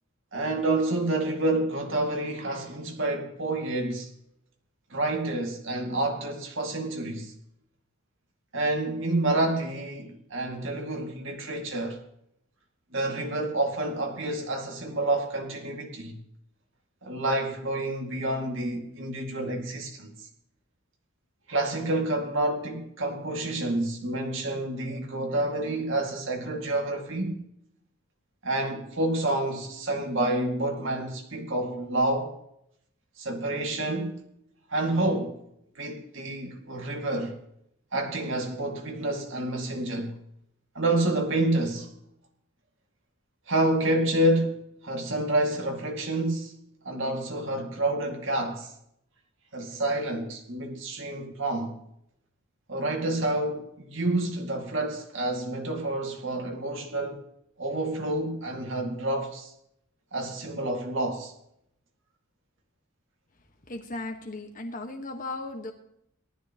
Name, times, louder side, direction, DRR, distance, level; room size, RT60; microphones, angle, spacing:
voice 1, 0.3-4.1 4.9-7.3 8.5-12.0 12.9-16.2 17.0-20.1 21.5-27.4 28.4-32.4 33.2-34.2 34.7-35.4 35.8-37.4 37.9-40.2 40.8-41.9 43.5-46.6 46.8-48.7 49.5-51.8 52.7-57.3 57.6-59.5 60.1-61.3, right 2 dB, 65° right, 2.1 m, -28 dB
voice 2, 63.7-65.7, left 2 dB, 40° left, 1.4 m, -36 dB
19.0 x 13.0 x 3.0 m
head